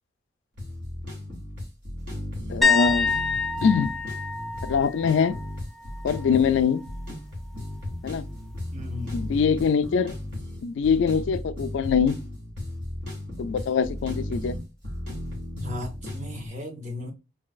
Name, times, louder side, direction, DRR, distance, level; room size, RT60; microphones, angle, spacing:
sound 1, 0.6-16.5, left 1 dB, 75° right, 2.1 m, -35 dB
voice 1, 2.5-3.1 3.6-3.9 4.6-5.3 6.0-6.8 8.0-8.2 9.1-10.1 10.6-12.2 13.4-14.5, left 6 dB, 80° left, 0.3 m, -23 dB
sound 2, 2.6-6.4 6.7-7.0 9.9-10.0, left 4 dB, ahead, 0.4 m, -27 dB
voice 2, 8.7-9.2 15.6-17.1, left 2 dB, 40° right, 0.7 m, -36 dB
3.8 x 2.7 x 2.3 m
head